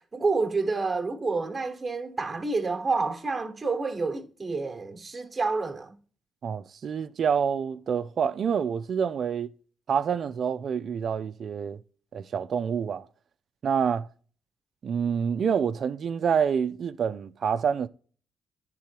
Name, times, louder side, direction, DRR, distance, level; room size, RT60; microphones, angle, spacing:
voice 1, 0.0-6.0, right 3 dB, 25° right, 1.2 m, -29 dB
voice 2, 6.4-9.5 9.9-11.8 12.1-13.1 13.6-14.1 14.8-17.9, right 7 dB, 55° right, 0.5 m, -27 dB
10.0 x 3.8 x 4.5 m
cardioid pair, 90°, 0 cm